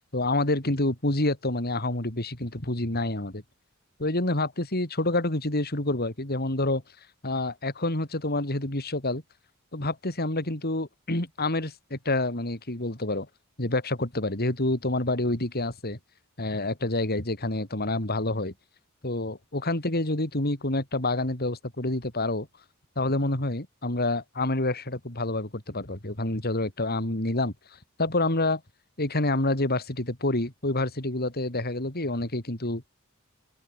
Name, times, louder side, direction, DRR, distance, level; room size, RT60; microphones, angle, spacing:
voice 1, 0.0-3.4 4.0-6.8 7.2-9.2 9.7-13.3 13.6-16.0 16.4-18.5 19.0-22.5 23.0-27.5 28.0-28.6 29.0-32.8, left 2 dB, 45° left, 4.0 m, -28 dB
head